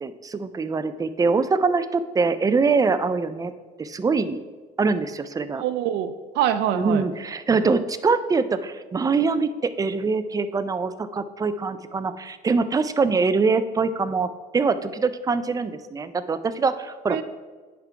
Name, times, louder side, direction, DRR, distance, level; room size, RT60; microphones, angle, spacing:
voice 1, 0.0-3.5 3.8-4.4 4.8-5.6 6.7-17.2, right 4 dB, 20° right, 12 dB, 0.4 m, -23 dB
voice 2, 5.6-7.0 17.1-17.2, right 10 dB, 80° right, 11 dB, 0.4 m, -25 dB
9.5 x 3.6 x 4.6 m, 1.4 s
cardioid pair, 110°, 17 cm